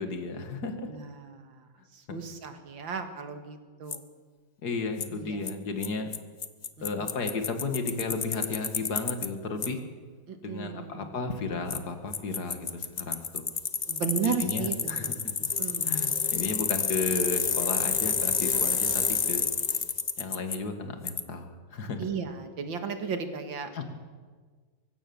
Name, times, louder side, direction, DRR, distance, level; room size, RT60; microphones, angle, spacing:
voice 1, 0.0-0.9 2.1-2.2 4.6-6.1 6.8-9.8 10.4-13.4 14.2-15.6 15.8-19.4 20.2-22.1 23.7-23.8, left 4 dB, 55° left, 6 dB, 2.4 m, -34 dB
voice 2, 0.9-1.7 1.9-4.0 5.1-5.4 6.8-7.1 10.3-11.2 13.9-15.1 15.6-16.0 22.0-23.8, right 6 dB, 75° right, 7 dB, 2.5 m, -35 dB
Bicycle, 3.9-4.0 5.0-5.1 5.5-5.6 5.8-5.9 6.1-6.2 6.4-9.3 9.6-9.7 11.7-11.8 12.1-20.6 21.1-21.2, left 5 dB, 70° left, 0.4 m, -29 dB
23.5 x 16.0 x 7.1 m, 1.5 s
omnidirectional pair, 2.1 m